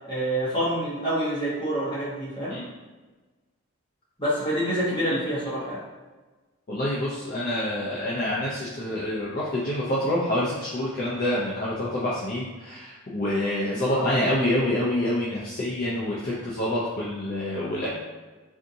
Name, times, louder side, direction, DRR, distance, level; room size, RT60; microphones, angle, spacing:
voice 1, 0.1-2.5 4.2-5.8 13.9-14.1, right 1 dB, 25° left, -9 dB, 1.1 m, -27 dB
voice 2, 6.7-17.9, left 1 dB, 45° left, -7 dB, 0.5 m, -27 dB
3.5 x 2.7 x 2.7 m, 1.3 s
head